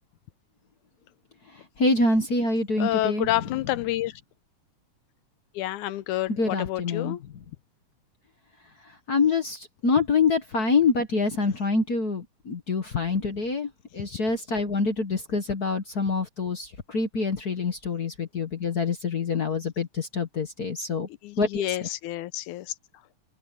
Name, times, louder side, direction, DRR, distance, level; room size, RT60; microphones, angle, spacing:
voice 1, 1.8-3.3 6.4-7.2 9.1-21.1 21.4-21.6, left 4 dB, 45° left, 1.2 m, -26 dB
voice 2, 2.8-4.1 5.6-7.2 21.2-22.7, left 15 dB, 80° left, 2.1 m, -28 dB
omnidirectional pair, 3.6 m